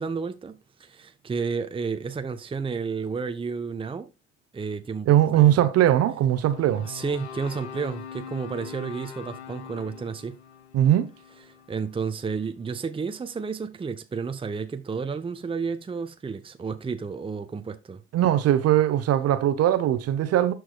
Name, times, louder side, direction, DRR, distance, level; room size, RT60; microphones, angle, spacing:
voice 1, 0.0-4.1 4.5-5.6 6.8-10.3 11.7-18.0, right 5 dB, 15° right, 0.8 m, -31 dB
voice 2, 5.1-6.9 10.7-11.1 18.1-20.5, right 12 dB, 50° right, 1.0 m, -20 dB
sound 1, 6.5-12.8, left 8 dB, 80° left, 0.8 m, -42 dB
12.5 x 4.7 x 2.3 m
figure-of-eight pair, 55°, 33 cm